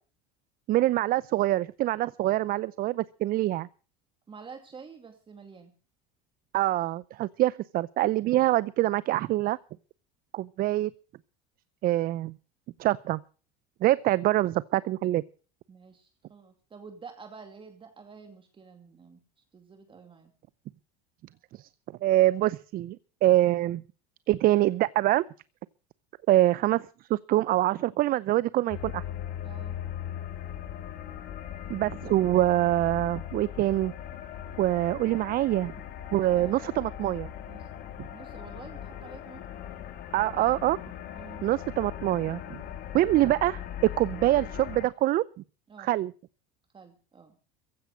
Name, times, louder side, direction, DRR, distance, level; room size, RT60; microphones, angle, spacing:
voice 1, 0.7-3.7 6.5-9.6 10.3-10.9 11.8-12.4 12.8-13.2 13.8-15.2 21.5-21.7 22.0-23.8 24.3-25.2 26.3-29.0 31.7-33.9 34.6-35.7 36.1-37.3 40.1-40.8 41.4-42.6 42.9-45.2 45.8-46.1, right 15 dB, 45° right, 20 dB, 0.6 m, -25 dB
voice 2, 4.3-5.7 15.7-19.2 19.5-20.3 29.4-29.8 36.1-36.7 37.4-37.7 38.1-39.6 41.1-41.5 45.7-45.9 46.7-47.4, right 5 dB, 25° right, 6 dB, 2.4 m, -49 dB
sound 1, 28.7-44.9, left 10 dB, 55° left, 3.0 m, -39 dB
15.5 x 10.5 x 6.4 m, 0.39 s
supercardioid pair, 95°, 20 cm